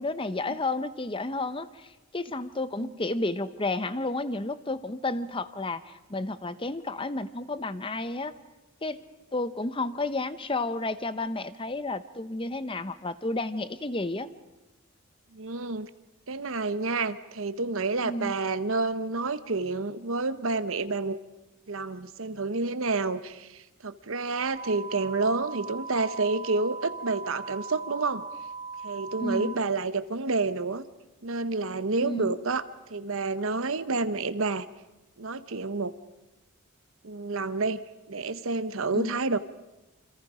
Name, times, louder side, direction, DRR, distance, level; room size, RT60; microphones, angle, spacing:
voice 1, 0.0-8.3 8.8-9.0 9.3-14.3 18.0-18.3 29.2-29.5 32.0-32.3 38.9-39.2, left 2 dB, 25° left, 12 dB, 0.8 m, -31 dB
voice 2, 15.3-15.9 16.3-21.2 21.7-28.2 28.8-30.8 31.2-32.6 32.9-34.7 35.2-35.9 37.0-39.4, right 3 dB, 75° right, 13 dB, 1.0 m, -29 dB
sound 1, 24.5-29.5, right 4 dB, 35° right, 1.0 m, -39 dB
28.5 x 26.0 x 5.0 m, 1.1 s
head